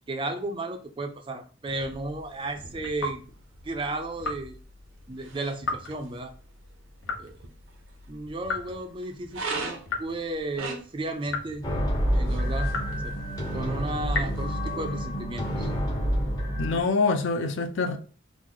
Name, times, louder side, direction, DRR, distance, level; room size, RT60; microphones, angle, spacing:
voice 1, 0.1-3.2 3.6-4.6 5.1-6.3 7.2-7.4 8.1-11.6 12.1-12.8 13.0-13.1 13.5-15.7, right 2 dB, 25° right, 0.4 m, -34 dB
sound 1, 1.7-14.8, right 3 dB, 80° right, 0.6 m, -43 dB
sound 2, 2.8-3.2 4.2-4.5 5.6-6.0 7.0-7.4 8.4-8.9 9.9-10.2 11.3-11.7 12.7-13.1 14.1-14.5, left 3 dB, 85° left, 0.8 m, -33 dB
sound 3, 11.6-16.8, equal, 20° left, 0.6 m, -28 dB
voice 2, 16.6-18.0, left 3 dB, 70° left, 0.4 m, -25 dB
3.0 x 2.0 x 3.7 m
head